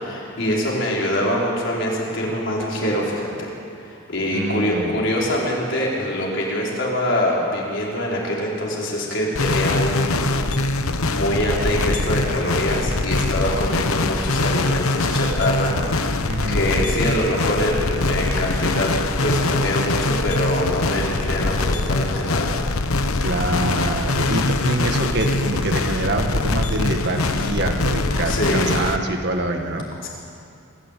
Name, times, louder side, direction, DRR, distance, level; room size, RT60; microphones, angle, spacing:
voice 1, 0.0-3.5 3.8-10.2 11.1-15.8 16.5-18.9 19.2-22.5 28.2-28.8 30.0-30.1, equal, 60° left, -4 dB, 4.8 m, -24 dB
voice 2, 4.3-5.0 16.3-16.6 23.2-29.9, right 1 dB, 50° right, 3 dB, 1.9 m, -25 dB
sound 1, 9.3-29.0, left 2 dB, 85° left, 1.0 m, -23 dB
24.5 x 14.0 x 8.6 m, 2.6 s
head